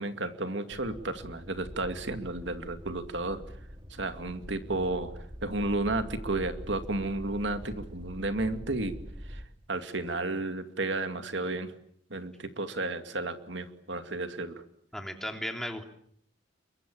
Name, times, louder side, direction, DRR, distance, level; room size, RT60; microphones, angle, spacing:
voice 1, 0.0-3.4 3.9-5.1 5.4-8.9 9.2-9.4 9.7-11.7 12.1-14.6, right 2 dB, 65° right, 8 dB, 2.5 m, -32 dB
sound 1, 0.7-9.5, equal, 25° right, 2.6 m, -44 dB
voice 2, 14.9-15.8, equal, ahead, 4 dB, 3.1 m, -35 dB
29.0 x 23.5 x 8.7 m, 0.67 s
head